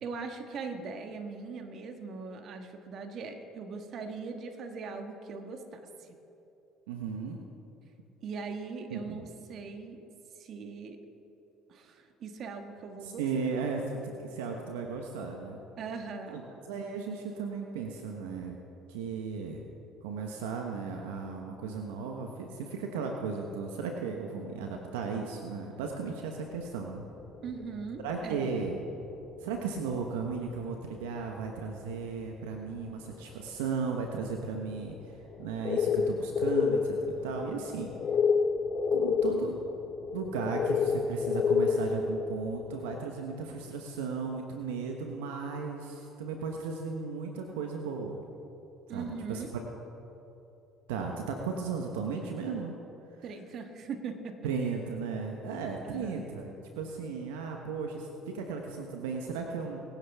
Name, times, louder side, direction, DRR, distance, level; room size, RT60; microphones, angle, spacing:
voice 1, 0.0-6.1 8.2-10.0 10.4-11.0 11.7-13.2 15.8-16.4 27.4-28.5 48.9-49.5 53.2-54.4 55.8-56.2, right 5 dB, 55° right, 6 dB, 1.5 m, -40 dB
voice 2, 6.9-7.4 8.9-9.2 13.0-15.6 16.3-16.4 16.7-18.6 18.9-19.6 20.0-27.1 28.0-28.8 29.4-37.0 37.2-37.9 38.9-39.6 40.1-48.2 48.9-49.5 50.9-52.8 54.4-59.8, right 5 dB, 85° right, 2 dB, 1.1 m, -35 dB
sound 1, 26.6-28.1 29.1-29.2 30.0-30.1 30.7-30.8 30.9-31.0 32.3-32.6 33.1-33.4 33.8-34.1 34.8-35.0 35.3-43.0, left 5 dB, 50° left, 0.6 m, -29 dB
23.0 x 10.0 x 3.5 m, 2.8 s
hypercardioid pair, 65°, 0 cm